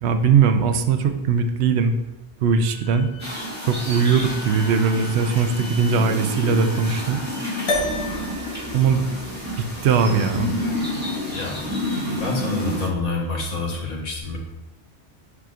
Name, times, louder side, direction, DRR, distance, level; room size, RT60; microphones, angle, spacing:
voice 1, 0.0-1.9 2.4-3.1 3.7-7.2 8.7-9.0 9.8-10.5, right 6 dB, 65° right, 7 dB, 0.9 m, -20 dB
Wind instrument woodwind instrument, 2.6-7.3, left 3 dB, 80° right, 2.6 m, -42 dB
sound 1, 3.2-12.9, left 1 dB, 15° right, 1.9 m, -29 dB
sound 2, 7.7-12.3, left 1 dB, 60° left, 1.4 m, -32 dB
voice 2, 11.3-11.7 12.1-14.4, left 3 dB, 80° left, -1 dB, 1.6 m, -27 dB
8.1 x 5.8 x 2.5 m, 0.98 s
omnidirectional pair, 1.3 m